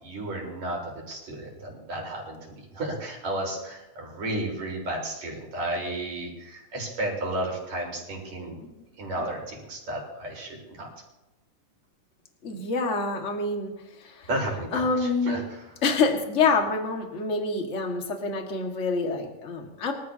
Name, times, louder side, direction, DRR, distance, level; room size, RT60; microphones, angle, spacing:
voice 1, 0.0-2.4 2.7-8.6 9.0-10.9 14.3-15.6, right 1 dB, 55° right, -1 dB, 5.5 m, -33 dB
voice 2, 12.4-13.7 14.0-14.3 14.7-15.4 15.8-19.9, left 4 dB, 30° left, 2 dB, 1.6 m, -26 dB
24.5 x 15.0 x 2.9 m, 1.0 s
omnidirectional pair, 3.7 m